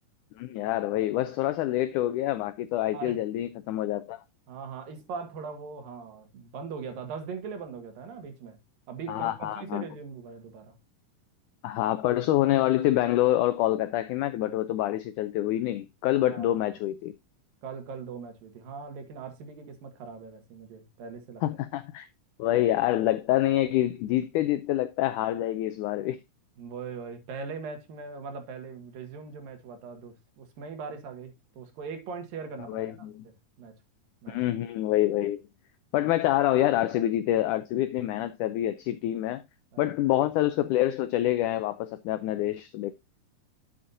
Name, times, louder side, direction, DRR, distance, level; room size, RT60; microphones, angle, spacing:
voice 1, 0.4-4.2 9.1-9.8 11.6-17.1 21.4-22.1 22.4-26.2 32.7-33.2 34.3-35.4 35.9-39.4 39.8-43.0, left 14 dB, 85° left, 1.8 m, -26 dB
voice 2, 4.5-8.6 8.9-10.8 16.1-16.6 17.6-21.4 26.6-33.8 34.2-34.4 39.7-39.8, right 5 dB, 70° right, 3.3 m, -40 dB
11.0 x 7.3 x 2.6 m
omnidirectional pair, 4.2 m